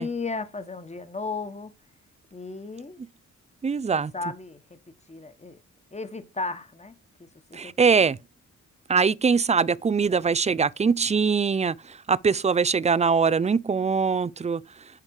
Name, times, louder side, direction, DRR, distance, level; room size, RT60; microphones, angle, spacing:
voice 1, 0.0-1.7 2.3-3.0 3.9-4.6 5.1-5.6 5.9-6.9 7.5-7.7, left 3 dB, 20° left, 1.3 m, -34 dB
voice 2, 3.6-4.1 7.5-8.2 8.9-14.6, right 5 dB, 20° right, 0.4 m, -22 dB
9.7 x 3.3 x 4.8 m
supercardioid pair, 50°, 33 cm